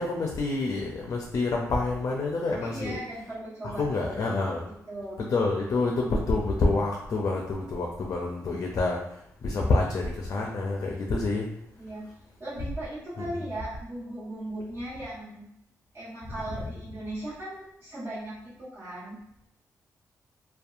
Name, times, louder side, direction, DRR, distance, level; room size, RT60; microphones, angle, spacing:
voice 1, 0.0-3.0 3.8-4.6 5.3-9.0 9.4-11.5, left 3 dB, 55° left, 0 dB, 0.4 m, -27 dB
voice 2, 2.6-4.3 4.9-5.2 8.2-8.4 11.8-12.1 12.4-15.5 15.9-19.2, right 1 dB, 35° right, -11 dB, 1.4 m, -38 dB
2.6 x 2.2 x 2.4 m, 0.78 s
cardioid pair, 75°, 6 cm